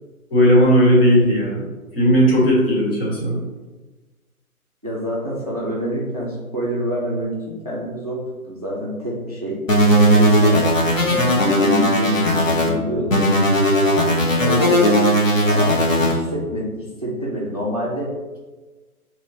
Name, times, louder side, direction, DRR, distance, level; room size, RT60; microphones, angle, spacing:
voice 1, 0.3-1.7 1.9-3.4, equal, 40° left, -5 dB, 1.5 m, -16 dB
voice 2, 4.8-9.6 9.9-10.7 11.0-11.2 11.6-13.2 14.4-14.8 15.4-18.4, equal, 30° right, -4 dB, 0.5 m, -27 dB
sound 1, 9.7-12.7 13.1-16.1, equal, 60° left, 1.1 m, -17 dB
5.4 x 3.0 x 2.7 m, 1.2 s
figure-of-eight pair, 150°, 45 cm